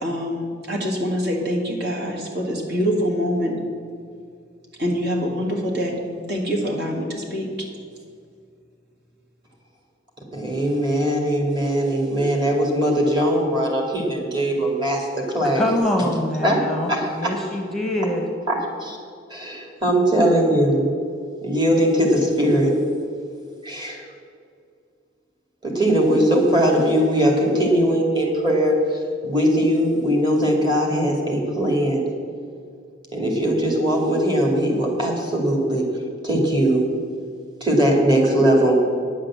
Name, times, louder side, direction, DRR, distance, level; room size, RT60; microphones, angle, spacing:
voice 1, 0.0-3.6 4.8-6.0 6.3-7.5, equal, 55° right, 2.0 m, -25 dB
voice 2, 10.3-15.1 15.3-15.7 16.4-16.6 16.9-17.3 18.5-19.0 19.3-20.9 21.4-22.7 23.6-24.0 25.6-32.1 33.1-35.8 36.2-36.8 37.6-38.8, equal, 25° right, 2.3 m, -20 dB
voice 3, 15.5-18.3, left 1 dB, ahead, 1.1 m, -24 dB
9.9 x 7.5 x 7.4 m
head